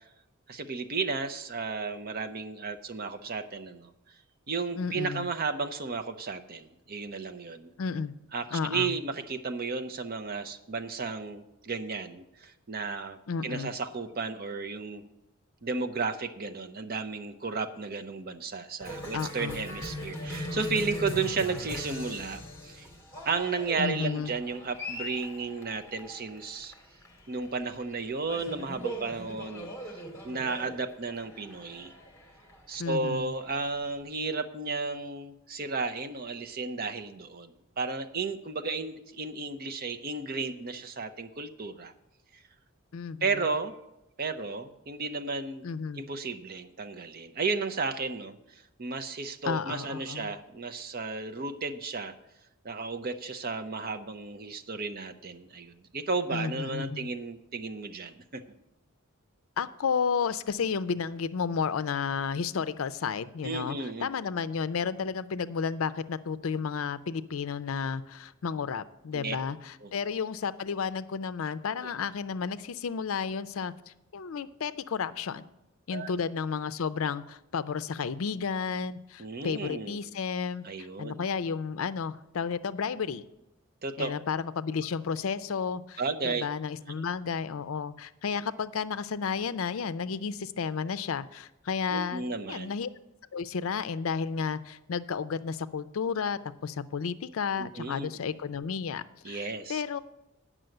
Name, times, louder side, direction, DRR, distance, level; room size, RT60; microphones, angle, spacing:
voice 1, 0.5-3.9 4.5-7.7 8.3-13.2 13.4-15.0 15.6-22.9 23.2-26.7 27.3-29.7 30.2-31.9 32.7-41.9 43.2-43.7 44.2-45.6 45.9-48.4 48.8-52.1 52.6-58.4 63.4-64.1 69.1-69.4 69.8-69.9 75.9-76.1 79.2-80.0 80.6-81.2 83.8-84.1 86.0-86.5 91.9-92.7 97.6-98.3 99.2-99.8, right 4 dB, 45° right, 8 dB, 0.6 m, -33 dB
voice 2, 4.8-5.3 7.8-8.1 8.5-8.9 13.3-13.7 19.1-19.6 23.8-24.3 32.8-33.3 42.9-43.4 45.6-46.0 49.4-50.3 56.3-57.1 59.6-75.5 75.9-83.2 84.0-92.9 93.3-100.0, left 6 dB, 70° left, 13 dB, 0.5 m, -32 dB
Cheering, 18.8-34.0, left 1 dB, 15° left, 1.9 m, -41 dB
9.2 x 6.2 x 7.7 m, 0.91 s
head